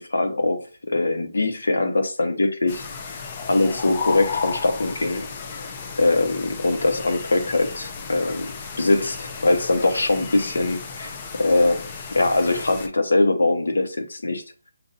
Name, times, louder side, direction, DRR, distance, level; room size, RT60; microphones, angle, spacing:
voice 1, 0.0-2.9 3.5-5.3 6.0-11.1 11.4-14.4, left 2 dB, 75° left, 1.0 m, -22 dB
sound 1, 2.7-12.9, left 5 dB, 20° left, 0.4 m, -34 dB
6.9 x 2.6 x 2.6 m
hypercardioid pair, 175°, 0 cm